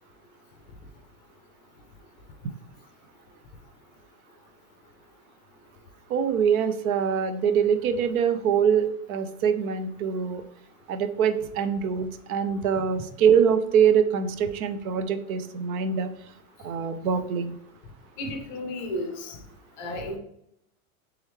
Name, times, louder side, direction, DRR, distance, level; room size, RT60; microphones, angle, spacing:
voice 1, 6.1-10.4 10.9-16.1 16.6-17.6, right 7 dB, 75° right, 10 dB, 0.6 m, -24 dB
voice 2, 18.2-19.4 19.8-20.2, left 1 dB, 30° left, 3 dB, 0.5 m, -33 dB
3.5 x 3.4 x 3.1 m, 0.78 s
supercardioid pair, 165°, 43 cm